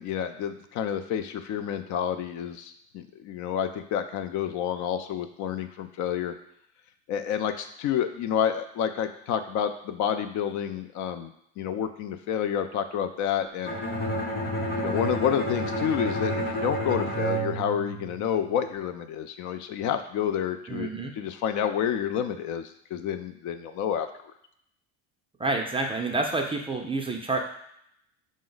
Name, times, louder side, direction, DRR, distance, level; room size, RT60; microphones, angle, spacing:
voice 1, 0.0-6.3 7.1-13.8 14.7-20.9 21.2-24.1, left 9 dB, 55° left, 9 dB, 0.4 m, -29 dB
Bowed string instrument, 13.7-18.6, right 1 dB, 25° left, 0.9 m, -30 dB
voice 2, 20.7-21.1 25.4-27.4, right 3 dB, 15° right, 2 dB, 0.4 m, -28 dB
5.1 x 2.1 x 3.8 m, 0.74 s
supercardioid pair, 100°, 36 cm